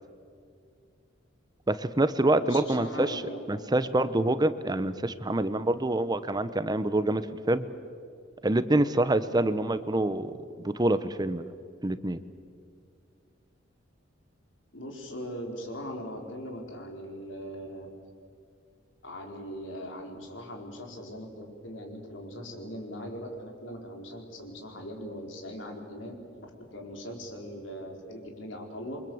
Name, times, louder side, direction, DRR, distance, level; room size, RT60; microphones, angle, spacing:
voice 1, 1.7-3.2 3.5-7.7 8.4-10.3 10.6-11.5 11.8-12.2, right 1 dB, 20° right, 13 dB, 0.8 m, -26 dB
voice 2, 2.4-3.7 14.7-17.9 19.0-26.1 26.4-29.0, equal, 80° left, 2 dB, 4.6 m, -40 dB
28.5 x 24.0 x 7.9 m, 2.3 s
head